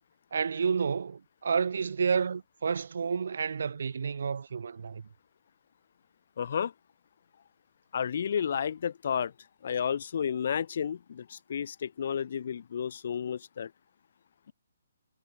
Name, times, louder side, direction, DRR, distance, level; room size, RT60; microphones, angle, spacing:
voice 1, 0.3-5.1, right 6 dB, 55° right, 2.5 m, -30 dB
voice 2, 6.4-6.7 7.9-9.3 9.6-13.7, left 8 dB, 50° left, 1.3 m, -31 dB
figure-of-eight pair, 130°, 0 cm